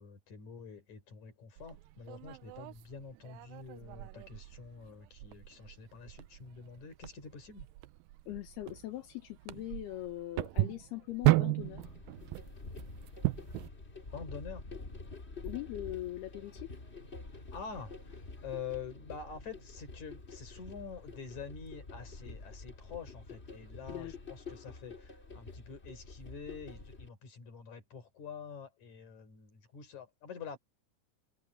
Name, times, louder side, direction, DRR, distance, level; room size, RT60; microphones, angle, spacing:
voice 1, 0.0-7.7 14.1-14.6 17.3-30.6, left 6 dB, 45° left, 5.4 m, -47 dB
sound 1, 1.6-13.7, right 19 dB, 85° right, 2.0 m, -35 dB
voice 2, 8.3-11.9 15.4-16.8 23.9-24.1, left 15 dB, 80° left, 3.3 m, -41 dB
sound 2, 11.6-27.1, left 3 dB, 25° left, 1.6 m, -48 dB
open air
omnidirectional pair, 4.7 m